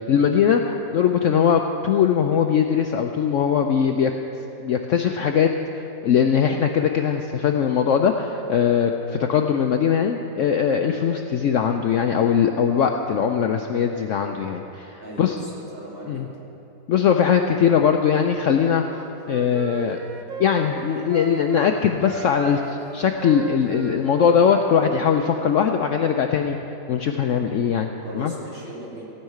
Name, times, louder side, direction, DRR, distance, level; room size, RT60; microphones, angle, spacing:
voice 1, 0.1-4.1 4.6-15.4 16.1-16.3 16.9-18.8 19.3-20.0 20.4-26.6 26.9-27.9 28.1-28.3, left 7 dB, 65° left, 4 dB, 0.8 m, -20 dB
voice 2, 15.0-16.3 28.0-29.1, right 1 dB, 35° right, -7 dB, 3.2 m, -38 dB
Wind instrument woodwind instrument, 18.8-21.7 22.0-25.4, right 6 dB, 75° right, 0.4 m, -37 dB
16.0 x 5.6 x 9.1 m, 3.0 s
omnidirectional pair, 1.7 m